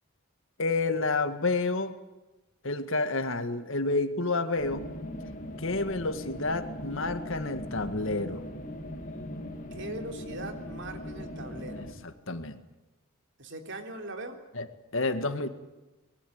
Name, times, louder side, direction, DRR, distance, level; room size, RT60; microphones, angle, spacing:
voice 1, 0.6-1.9 2.6-4.9 5.6-8.5 11.8-12.6 14.5-14.7 14.9-15.5, left 3 dB, 60° left, 9 dB, 1.9 m, -29 dB
sound 1, 4.6-11.9, left 1 dB, 35° left, 2.9 m, -40 dB
voice 2, 9.7-11.9 13.4-14.4, right 2 dB, 55° right, 5 dB, 3.5 m, -40 dB
25.0 x 21.0 x 8.9 m, 1.1 s
head